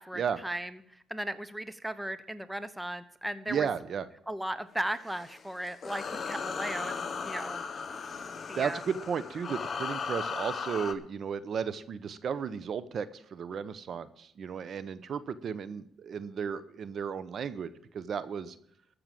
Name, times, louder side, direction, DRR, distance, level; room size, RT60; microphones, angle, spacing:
voice 1, 0.0-3.7 4.3-7.6 8.5-8.8, right 1 dB, 10° right, 13 dB, 0.9 m, -36 dB
voice 2, 3.5-4.1 8.6-18.6, right 7 dB, 55° right, 14 dB, 0.9 m, -34 dB
sound 1, 4.9-10.9, left 5 dB, 45° left, 1.3 m, -37 dB
14.0 x 6.8 x 7.5 m, 0.68 s
cardioid pair, 90°, 0 cm